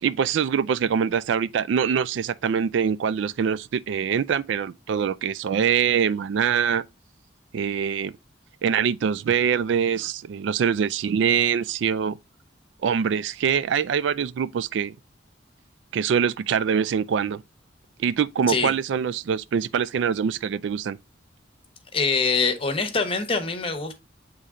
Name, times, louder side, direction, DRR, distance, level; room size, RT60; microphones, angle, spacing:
voice 1, 0.0-6.8 7.5-8.1 8.6-12.2 12.8-15.0 15.9-17.4 18.0-21.0, right 7 dB, 70° right, 0.3 m, -24 dB
voice 2, 21.9-24.0, left 4 dB, 30° left, 0.9 m, -24 dB
8.3 x 3.2 x 3.6 m
head